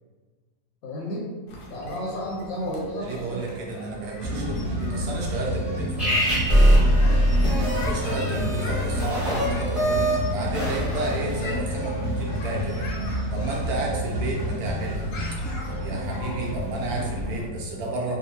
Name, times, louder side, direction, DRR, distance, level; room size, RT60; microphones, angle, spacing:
voice 1, 0.8-1.3 1.7-3.4 4.3-4.5 7.0-7.3, equal, 70° left, -4 dB, 1.1 m, -32 dB
sound 1, 1.5-17.5, left 2 dB, 90° left, 1.2 m, -41 dB
voice 2, 3.0-6.3 7.8-12.9 13.3-15.1 15.7-18.2, right 2 dB, 80° right, -2 dB, 1.2 m, -32 dB
sound 2, 4.2-17.4, equal, 40° right, 0.9 m, -29 dB
sound 3, 6.0-11.5, equal, ahead, 0.7 m, -22 dB
3.6 x 2.4 x 2.8 m, 1.4 s
omnidirectional pair, 1.6 m